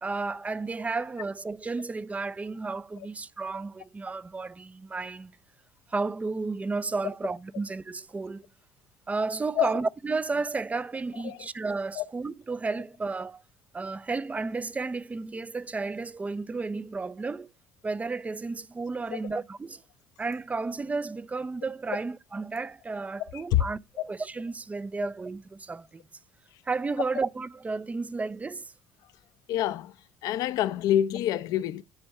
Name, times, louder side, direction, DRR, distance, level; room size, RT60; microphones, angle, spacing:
voice 1, 0.0-5.3 5.9-8.4 9.1-13.4 13.7-17.5 17.8-19.8 20.2-26.0 26.7-28.7, right 3 dB, 20° right, 0.4 m, -32 dB
voice 2, 29.5-29.9 30.2-31.8, left 12 dB, 65° left, 0.6 m, -26 dB
9.6 x 3.5 x 5.3 m
hypercardioid pair, 60°, 7 cm